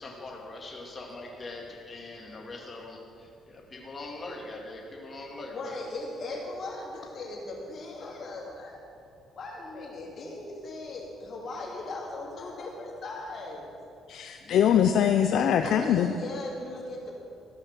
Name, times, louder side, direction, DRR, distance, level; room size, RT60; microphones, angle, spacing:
voice 1, 0.0-5.7 14.4-14.8, left 2 dB, 30° left, -1 dB, 2.2 m, -42 dB
voice 2, 5.5-8.8 9.3-13.7 15.6-17.1, left 2 dB, 55° left, -2 dB, 2.8 m, -38 dB
voice 3, 14.1-16.1, left 9 dB, 70° left, 7 dB, 0.4 m, -23 dB
14.5 x 5.7 x 6.1 m, 2.5 s
cardioid pair, 90°, 0 cm